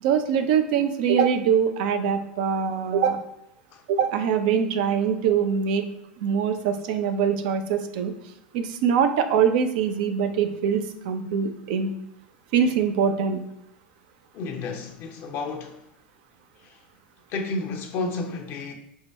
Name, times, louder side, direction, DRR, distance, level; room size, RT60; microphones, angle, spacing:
voice 1, 0.0-3.2 3.9-5.9 6.2-8.1 8.5-11.9 12.5-13.4, right 7 dB, 60° right, 0.5 m, -23 dB
voice 2, 14.3-15.9 16.6-16.8 17.3-18.7, left 3 dB, 50° left, 0.6 m, -32 dB
4.5 x 2.2 x 4.5 m
figure-of-eight pair, 85°, 5 cm